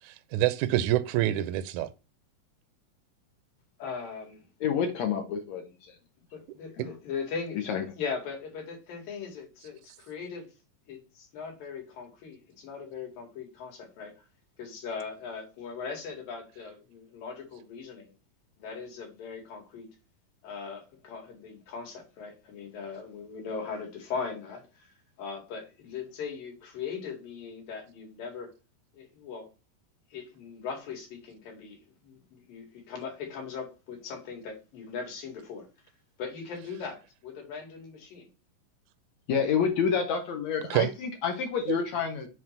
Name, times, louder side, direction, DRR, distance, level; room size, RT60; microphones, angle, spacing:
voice 1, 0.0-1.9 40.7-40.9 41.7-41.8, right 14 dB, 80° right, 1.8 m, -26 dB
voice 2, 3.8-4.4 6.3-7.7 8.0-10.5 10.9-14.2 14.6-18.1 18.6-19.9 20.4-24.9 25.2-28.5 28.9-29.5 30.1-35.7 36.2-38.3 39.3-39.5, left 5 dB, 85° left, 3.9 m, -39 dB
voice 3, 4.6-5.6 6.8-6.9 7.7-7.8 39.3-42.3, left 6 dB, 65° left, 2.0 m, -28 dB
7.4 x 3.1 x 5.8 m
omnidirectional pair, 3.9 m